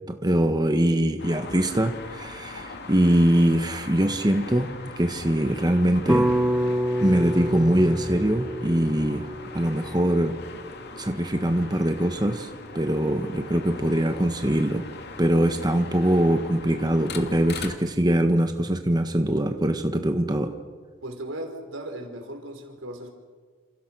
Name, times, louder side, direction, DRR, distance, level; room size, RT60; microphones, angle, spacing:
voice 1, 0.1-6.3 7.0-9.3 9.5-10.3 11.0-14.9 15.2-20.5, right 1 dB, 20° right, 6 dB, 1.4 m, -23 dB
sound 1, 1.2-17.8, left 3 dB, 55° left, 2.5 m, -40 dB
sound 2, 6.1-10.4, equal, 5° right, 0.8 m, -27 dB
voice 2, 21.0-23.1, right 1 dB, 80° right, 5 dB, 4.8 m, -36 dB
29.5 x 28.5 x 6.3 m, 1.5 s
head